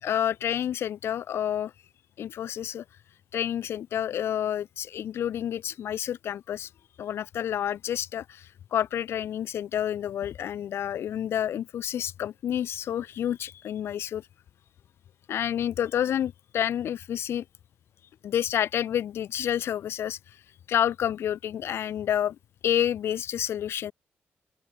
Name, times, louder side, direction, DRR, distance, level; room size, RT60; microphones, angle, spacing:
voice 1, 0.0-1.7 2.2-2.8 3.3-6.7 7.0-14.3 15.3-17.4 18.2-20.2 20.7-22.4 22.6-23.9, left 10 dB, 85° left, 4.0 m, -29 dB
open air
wide cardioid pair, 155°, 4 cm